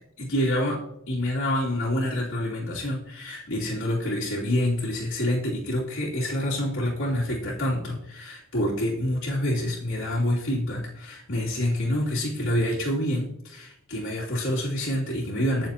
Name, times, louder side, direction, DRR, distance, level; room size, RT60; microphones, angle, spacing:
voice 1, 0.2-0.8 1.1-15.7, left 1 dB, 65° left, -6 dB, 3.1 m, -27 dB
21.0 x 7.1 x 3.0 m, 0.78 s
head